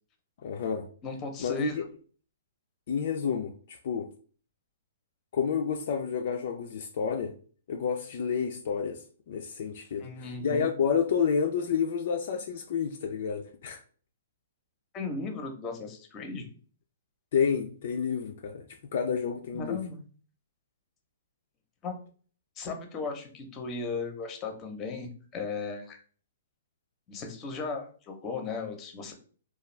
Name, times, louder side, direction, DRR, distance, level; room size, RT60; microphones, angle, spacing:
voice 1, 0.4-0.9 1.4-1.8 2.9-4.1 5.3-7.3 7.7-13.8 17.3-18.7 18.9-19.8, left 6 dB, 60° left, 0.3 m, -30 dB
voice 2, 1.0-1.8 10.0-10.7 14.9-16.5 19.5-20.0 21.8-21.9 22.6-26.0 27.1-29.1, left 4 dB, 25° left, 0.6 m, -36 dB
2.4 x 2.3 x 3.1 m
hypercardioid pair, 130°, 0 cm